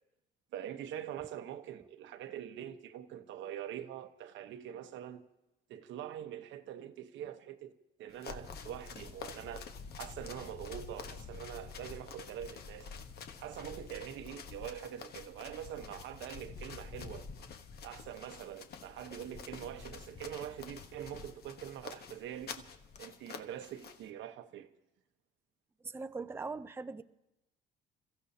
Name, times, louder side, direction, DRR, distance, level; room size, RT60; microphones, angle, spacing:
voice 1, 0.5-5.2 5.7-7.7 8.0-9.7 10.0-12.9 13.4-17.3 17.8-22.7 23.0-24.7, right 10 dB, 70° right, 1.1 m, -44 dB
sound 1, 8.1-24.1, left 6 dB, 55° left, 1.2 m, -50 dB
Camera, 8.3-23.0, left 4 dB, 35° left, 1.1 m, -51 dB
voice 2, 25.8-27.0, right 4 dB, 10° right, 0.6 m, -40 dB
29.0 x 15.0 x 2.8 m
cardioid pair, 110°, 20 cm